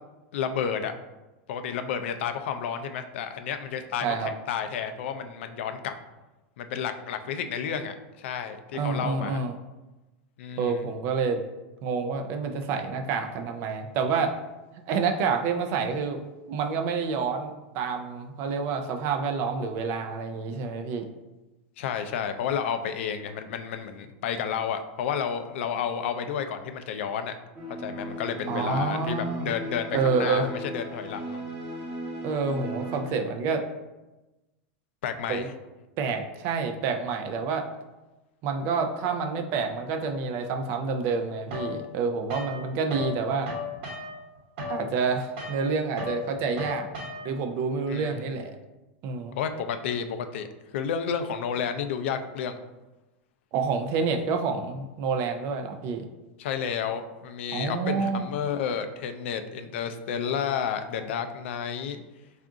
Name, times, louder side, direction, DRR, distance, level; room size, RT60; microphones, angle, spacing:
voice 1, 0.3-0.9 1.5-5.9 6.6-9.4 10.4-10.9 21.8-27.4 27.7-31.4 35.0-35.5 47.9-48.4 49.4-50.5 50.7-52.6 56.4-62.0, left 7 dB, 70° left, 8 dB, 0.3 m, -31 dB
voice 2, 4.0-4.3 8.7-9.6 10.6-11.4 11.8-14.4 14.9-16.2 16.5-21.1 28.5-29.5 29.9-30.5 32.2-33.6 35.3-35.5 36.0-37.7 38.4-43.5 44.7-46.9 47.2-48.5 49.0-49.4 53.5-56.1 57.5-58.3, right 5 dB, 35° right, 5 dB, 0.3 m, -28 dB
sound 1, 27.6-33.0, right 1 dB, 20° right, 0.8 m, -37 dB
sound 2, 41.5-43.2 43.4-47.5, left 3 dB, 55° right, 0.9 m, -36 dB
3.6 x 2.4 x 3.6 m, 1.1 s
supercardioid pair, 165°, 7 cm